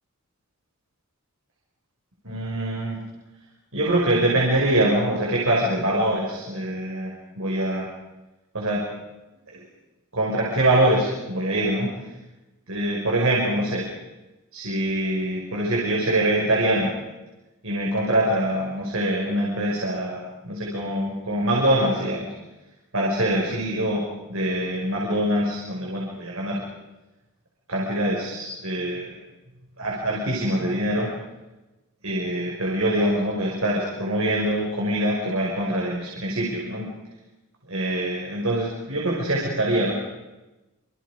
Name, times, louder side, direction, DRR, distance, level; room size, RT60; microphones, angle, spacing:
voice 1, 2.2-3.0 3.7-7.9 8.5-8.8 9.5-9.6 10.1-11.9 12.7-13.8 14.5-16.9 17.6-22.3 22.9-24.0 24.3-26.6 27.7-29.2 29.8-31.1 32.0-36.9 37.7-39.9, right 1 dB, 70° right, -3 dB, 6.0 m, -24 dB
28.0 x 26.5 x 5.2 m, 1.0 s
head